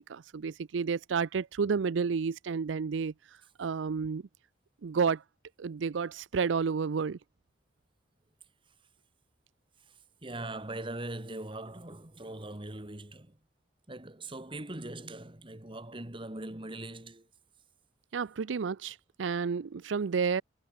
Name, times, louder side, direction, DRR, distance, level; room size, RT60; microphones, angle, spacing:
voice 1, 0.0-3.1 3.6-4.2 4.8-5.2 5.6-7.2 18.1-20.4, right 5 dB, 85° right, 0.5 m, -31 dB
voice 2, 10.2-13.4 13.9-17.3, right 2 dB, 30° right, 1.9 m, -41 dB
head